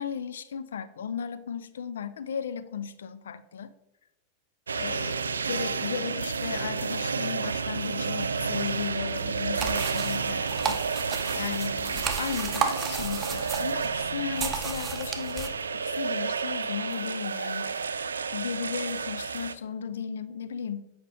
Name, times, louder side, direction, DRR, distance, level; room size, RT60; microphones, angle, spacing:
voice 1, 0.0-3.7 4.8-18.1 18.3-20.9, left 7 dB, 65° left, 13 dB, 0.4 m, -35 dB
sound 1, 4.7-19.5, right 5 dB, 75° right, 0.3 m, -31 dB
sound 2, 9.6-15.5, right 6 dB, 20° right, 0.8 m, -33 dB
9.2 x 4.9 x 3.2 m, 0.93 s
figure-of-eight pair, 90°, 0 cm